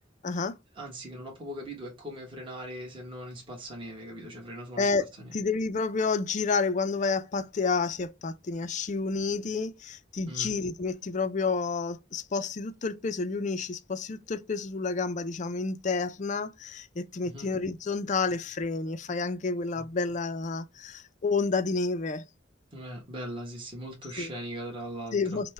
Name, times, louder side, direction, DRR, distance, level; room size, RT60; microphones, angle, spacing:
voice 1, 0.2-0.6 4.8-22.2 24.2-24.3 25.1-25.5, left 4 dB, 40° left, 0.4 m, -30 dB
voice 2, 0.7-4.9 5.2-5.3 10.3-10.5 17.2-17.5 19.8-19.9 22.7-25.4, equal, 25° right, 1.3 m, -40 dB
5.3 x 2.2 x 3.2 m
head